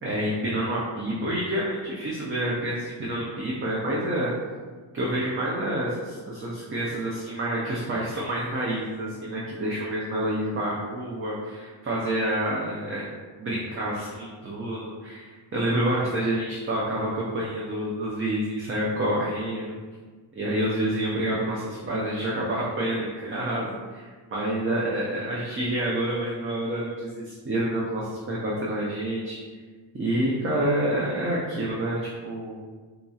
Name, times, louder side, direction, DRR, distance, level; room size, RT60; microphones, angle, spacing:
voice 1, 0.0-4.3 4.9-13.0 13.4-19.8 20.4-29.4 29.9-32.6, right 1 dB, 30° right, -5 dB, 0.4 m, -28 dB
3.9 x 2.7 x 2.3 m, 1.4 s
wide cardioid pair, 125°, 46 cm